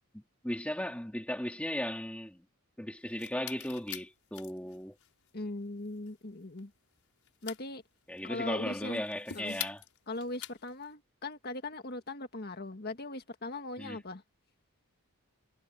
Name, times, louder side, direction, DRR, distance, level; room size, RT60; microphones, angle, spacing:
voice 1, 0.1-2.4 2.8-5.0 8.1-9.8 13.8-14.0, left 1 dB, 5° left, 2.1 m, -36 dB
sound 1, 3.0-10.9, left 11 dB, 70° left, 6.0 m, -46 dB
voice 2, 5.3-6.7 7.4-7.8 8.2-9.0 9.3-9.6 10.1-14.2, left 2 dB, 45° left, 1.8 m, -39 dB
head